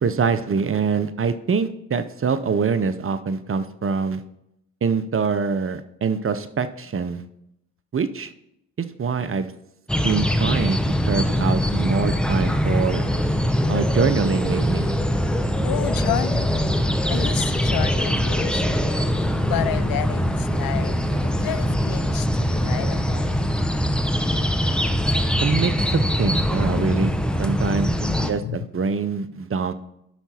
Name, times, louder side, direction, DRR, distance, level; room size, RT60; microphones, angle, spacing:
voice 1, 0.0-4.2 4.8-7.2 7.9-8.3 9.0-9.5 10.0-13.1 13.7-14.9 25.4-27.1 27.4-29.7, right 5 dB, 35° right, 11 dB, 0.6 m, -24 dB
sound 1, 9.9-28.3, equal, ahead, 0.8 m, -22 dB
voice 2, 15.6-16.7 17.1-19.1 19.4-21.0 21.2-23.5 26.3-27.4 28.0-28.7, left 12 dB, 65° left, 15 dB, 0.5 m, -31 dB
12.0 x 5.7 x 2.9 m, 0.80 s
hypercardioid pair, 45°, 37 cm